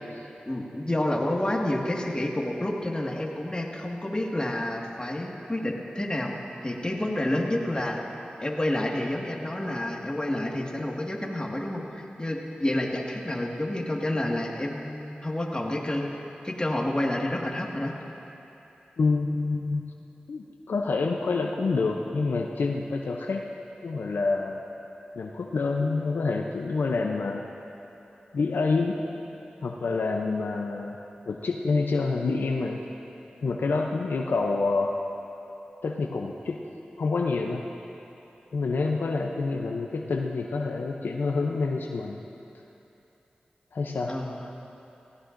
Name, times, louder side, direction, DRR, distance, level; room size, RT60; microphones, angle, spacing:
voice 1, 0.4-6.3 6.6-8.0 8.4-17.9 44.1-44.5, left 1 dB, 25° left, -1 dB, 1.8 m, -29 dB
voice 2, 19.0-19.8 20.3-23.4 23.8-24.6 25.2-27.4 28.3-29.0 29.6-31.0 31.3-32.8 33.4-35.0 35.8-36.6 37.0-37.7 38.5-42.2 43.7-44.2, left 3 dB, 85° left, 2 dB, 0.6 m, -27 dB
17.5 x 16.5 x 2.6 m, 2.9 s
cardioid pair, 45°, 3 cm